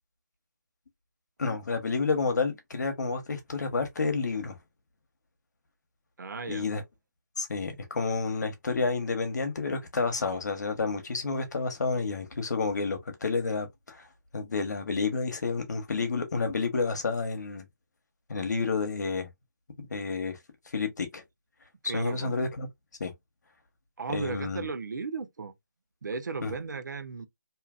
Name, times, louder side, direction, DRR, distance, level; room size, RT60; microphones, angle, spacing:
voice 1, 1.4-4.6 6.5-6.8 7.4-14.0 14.3-17.7 18.3-19.3 19.8-20.4 20.7-21.2 21.9-22.7 23.0-23.1 24.1-24.7 26.4-26.5, left 4 dB, 65° left, 1.0 m, -30 dB
voice 2, 6.2-6.7 21.8-22.3 24.0-25.5 26.0-27.3, right 4 dB, 75° right, 0.7 m, -35 dB
2.8 x 2.5 x 2.4 m
hypercardioid pair, 165°, 10 cm